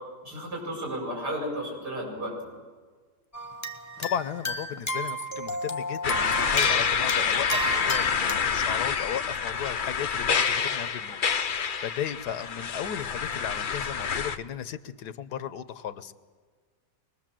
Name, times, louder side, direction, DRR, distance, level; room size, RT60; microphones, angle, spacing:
voice 1, 0.2-2.5, equal, 75° right, -3 dB, 8.0 m, -33 dB
sound 1, 3.3-8.3, equal, 10° left, 1.0 m, -32 dB
voice 2, 4.0-11.2 11.8-16.2, left 9 dB, 75° left, 13 dB, 1.4 m, -35 dB
sound 2, 6.0-14.4, left 6 dB, 45° left, 0.6 m, -27 dB
24.0 x 20.5 x 7.6 m, 1.5 s
omnidirectional pair, 1.8 m